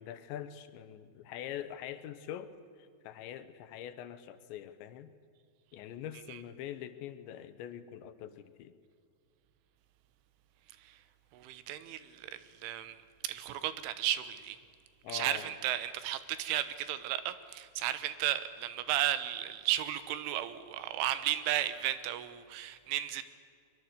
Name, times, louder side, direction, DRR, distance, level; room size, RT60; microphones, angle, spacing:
voice 1, 0.0-2.5 3.0-5.1 5.7-8.7 15.0-15.5, left 10 dB, 75° left, 11 dB, 3.0 m, -43 dB
voice 2, 11.3-13.0 13.2-14.6 15.1-23.2, right 12 dB, 80° right, 12 dB, 3.5 m, -34 dB
23.0 x 23.0 x 8.1 m, 2.2 s
omnidirectional pair, 5.7 m